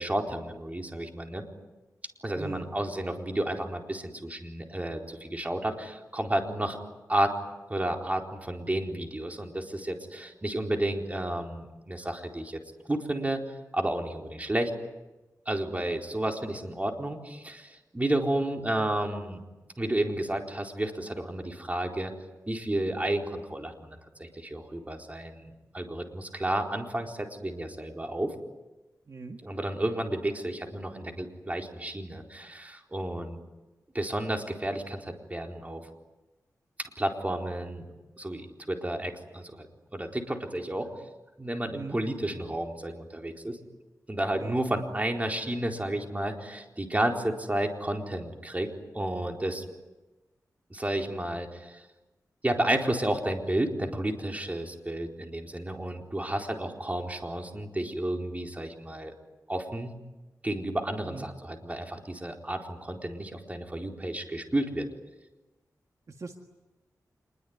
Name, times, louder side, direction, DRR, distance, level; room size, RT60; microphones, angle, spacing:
voice 1, 0.0-1.4 2.2-6.8 7.1-7.3 7.7-12.6 12.9-14.7 15.5-19.4 19.8-22.1 22.5-28.3 29.4-33.4 33.9-35.8 37.0-37.9 38.2-39.7 39.9-40.9 41.4-43.6 44.1-49.6 50.7-51.8 52.4-59.1 59.5-59.9 60.4-64.9, right 1 dB, 20° right, 2 dB, 4.2 m, -31 dB
voice 2, 2.3-2.7 29.1-29.4 41.7-42.0 44.4-44.6 61.0-61.3 66.1-66.4, right 3 dB, 55° right, 4 dB, 1.9 m, -40 dB
27.0 x 21.5 x 9.6 m, 1.1 s
wide cardioid pair, 75°, 7 cm